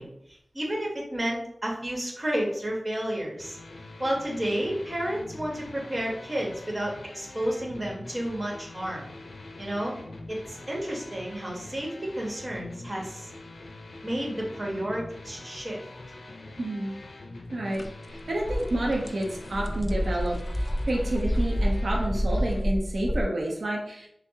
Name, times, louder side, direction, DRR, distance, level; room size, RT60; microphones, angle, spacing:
voice 1, 0.0-3.6 4.0-9.1 9.6-9.9 10.3-13.3 14.0-15.8, right 1 dB, 30° right, -2 dB, 1.0 m, -31 dB
sound 1, 3.4-22.6, left 2 dB, 90° left, 0.4 m, -44 dB
voice 2, 16.6-16.9 17.5-17.8 18.1-24.1, right 1 dB, 80° right, -2 dB, 0.6 m, -29 dB
sound 2, 17.7-17.9 18.2-23.2, equal, 15° left, 0.4 m, -28 dB
5.8 x 2.0 x 2.8 m, 0.75 s
wide cardioid pair, 85°, 0 cm